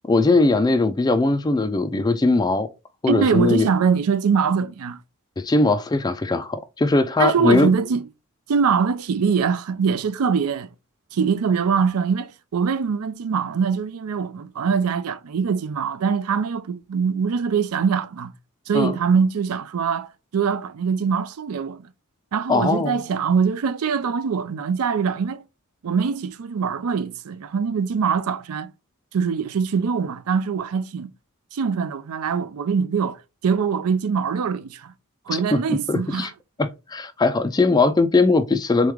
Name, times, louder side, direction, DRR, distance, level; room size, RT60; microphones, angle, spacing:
voice 1, 0.1-2.7 3.0-3.7 5.4-7.7 18.7-19.0 22.5-23.0 35.3-35.6 35.9-36.3 36.6-38.9, left 3 dB, 20° left, 0.3 m, -20 dB
voice 2, 3.1-5.0 7.2-8.0 8.5-10.7 11.1-18.3 18.7-21.9 22.3-25.4 25.8-28.7 29.1-31.1 31.5-34.9 35.3-36.3, right 6 dB, 80° right, 0.4 m, -23 dB
3.6 x 3.2 x 3.4 m
head